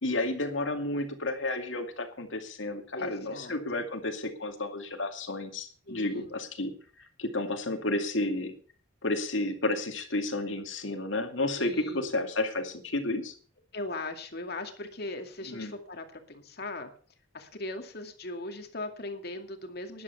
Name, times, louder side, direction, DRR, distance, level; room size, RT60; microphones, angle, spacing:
voice 1, 0.0-6.7 7.2-8.5 9.0-13.3 15.5-15.7, left 2 dB, 80° left, 6 dB, 2.4 m, -31 dB
voice 2, 2.9-3.9 5.9-6.4 11.6-12.1 13.7-16.9 17.3-20.0, left 2 dB, 55° left, 6 dB, 2.3 m, -39 dB
12.5 x 11.0 x 5.8 m, 0.42 s
head